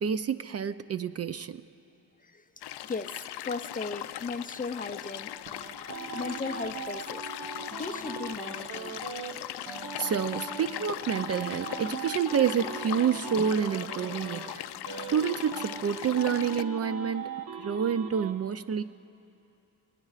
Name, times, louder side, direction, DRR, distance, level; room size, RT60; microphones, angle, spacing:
voice 1, 0.0-1.6 10.0-14.7 15.1-17.3 17.6-18.8, right 7 dB, 40° right, 12 dB, 0.4 m, -28 dB
sound 1, 2.6-16.6, left 12 dB, 80° left, 0.5 m, -39 dB
voice 2, 2.8-5.3 6.1-7.2 7.8-9.0, left 4 dB, 20° left, 10 dB, 0.4 m, -36 dB
sound 2, 5.0-9.3 9.7-14.5 14.9-18.3, right 5 dB, 70° right, 1.3 m, -40 dB
23.0 x 20.5 x 2.4 m, 2.6 s
cardioid pair, 80°, 39 cm